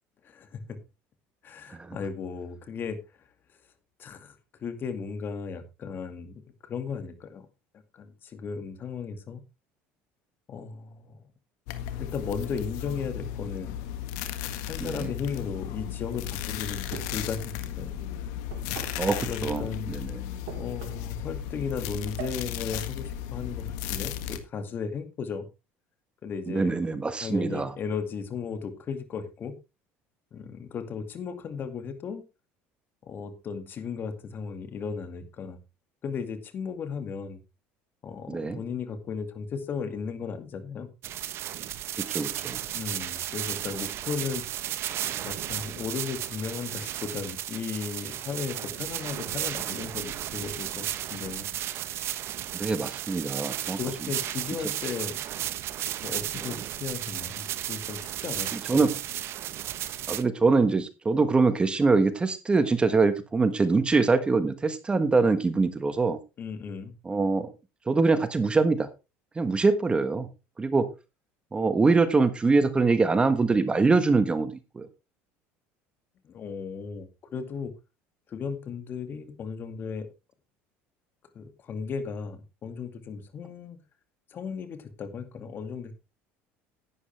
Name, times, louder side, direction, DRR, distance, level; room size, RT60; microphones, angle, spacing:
voice 1, 0.2-0.8 1.4-3.3 4.0-4.4 4.6-7.5 7.9-9.4 10.5-11.2 12.0-13.8 14.6-18.0 19.3-19.9 20.6-25.5 26.2-26.8 27.2-29.5 30.3-32.2 33.0-35.6 36.0-37.4 38.0-40.9 42.7-44.8 45.2-51.6 53.8-55.2 56.0-58.8 66.4-66.9 76.2-77.7 78.3-80.1 81.3-83.8 84.3-85.9, left 6 dB, 40° left, 9 dB, 2.3 m, -36 dB
sound 1, 11.7-24.4, left 11 dB, 80° left, 1.6 m, -35 dB
voice 2, 14.8-15.1 19.0-20.2 26.5-27.7 38.3-38.6 42.0-42.6 52.5-53.8 58.5-58.9 60.1-66.2 67.0-67.5 67.9-68.9 69.3-70.3 70.6-70.9 71.5-74.9, right 4 dB, 20° right, 11 dB, 1.3 m, -24 dB
sound 2, 16.9-17.4 18.5-19.1 20.5-21.1 22.2-22.9, right 9 dB, 75° right, 2.5 m, -42 dB
sound 3, 41.0-60.2, right 12 dB, 50° right, 1.0 m, -34 dB
11.5 x 9.9 x 3.4 m, 0.27 s
supercardioid pair, 115°, 5 cm